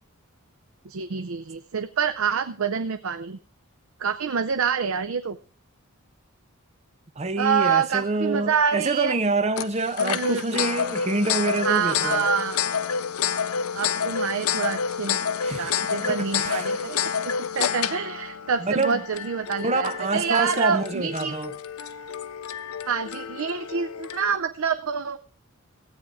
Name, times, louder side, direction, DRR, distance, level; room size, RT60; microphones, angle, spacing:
voice 1, 0.8-3.4 4.0-5.4 7.4-9.2 10.0-10.4 11.6-12.6 13.7-15.2 15.6-17.0 17.5-21.3 22.9-25.2, right 6 dB, 70° right, 0.6 m, -26 dB
voice 2, 7.2-12.2 15.4-16.9 18.6-19.0 19.6-21.5, right 3 dB, 30° right, 0.7 m, -27 dB
sound 1, 9.6-24.4, left 7 dB, 85° left, 0.6 m, -29 dB
15.5 x 8.5 x 4.7 m
head